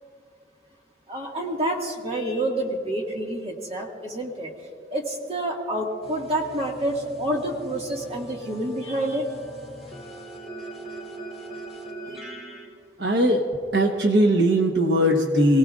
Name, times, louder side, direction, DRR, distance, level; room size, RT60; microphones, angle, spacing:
voice 1, 1.1-4.5 4.9-9.3, right 1 dB, 35° right, -1 dB, 2.0 m, -28 dB
sound 1, 6.0-12.6, right 2 dB, ahead, 3.2 m, -41 dB
voice 2, 13.0-13.5 13.7-15.6, equal, 70° right, 2 dB, 1.2 m, -19 dB
27.5 x 17.5 x 2.5 m, 2.4 s
head